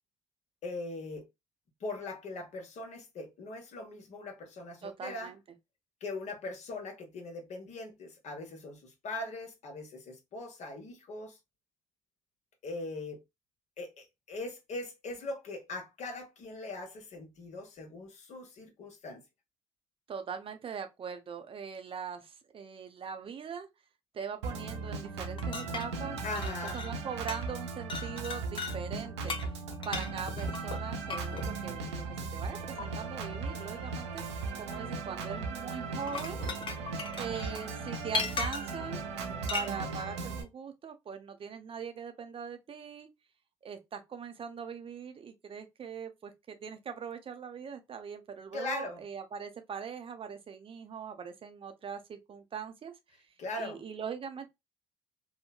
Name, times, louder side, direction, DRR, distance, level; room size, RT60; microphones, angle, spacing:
voice 1, 0.6-1.3 1.8-5.3 6.0-11.4 12.6-13.2 13.8-19.2 26.2-26.8 48.5-49.0 53.4-53.8, left 2 dB, 55° left, 1.0 m, -40 dB
voice 2, 4.8-5.4 20.1-23.7 24.1-29.4 29.9-32.1 32.3-34.2 34.6-36.4 37.2-39.0 39.5-43.1 43.6-52.9 53.6-54.5, right 6 dB, 40° right, 0.6 m, -41 dB
Organ, 24.4-40.4, right 4 dB, 85° right, 0.5 m, -37 dB
sound 1, 25.4-27.0 27.3-27.6 27.9-28.8 29.3-31.5 32.8-32.9 35.9-38.8 39.5-39.7, left 4 dB, 35° left, 0.6 m, -38 dB
3.1 x 2.1 x 2.3 m
hypercardioid pair, 50°, 14 cm